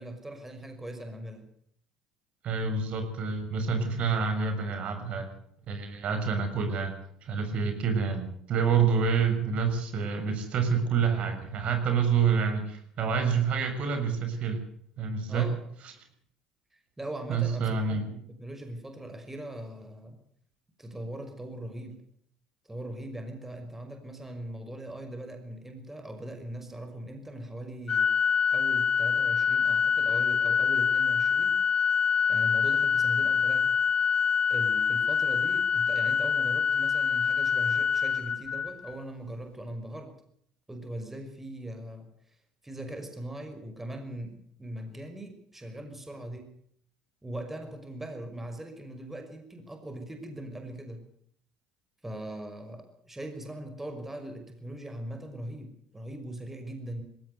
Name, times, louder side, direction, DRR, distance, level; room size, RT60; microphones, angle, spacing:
voice 1, 0.0-1.5 15.3-15.6 16.7-20.2 20.8-22.0 22.7-28.1 28.5-31.6 32.3-33.7 34.5-40.1 40.7-42.4 42.6-46.5 47.2-51.0 52.0-57.0, right 1 dB, 10° right, 5 dB, 5.7 m, -40 dB
voice 2, 2.4-5.3 5.7-6.9 7.2-14.6 15.0-15.5 17.3-18.0, right 6 dB, 55° right, 7 dB, 6.8 m, -27 dB
Organ, 27.9-38.9, left 6 dB, 40° left, 0.9 m, -25 dB
21.5 x 17.5 x 8.1 m, 0.67 s
hypercardioid pair, 65°, 2 cm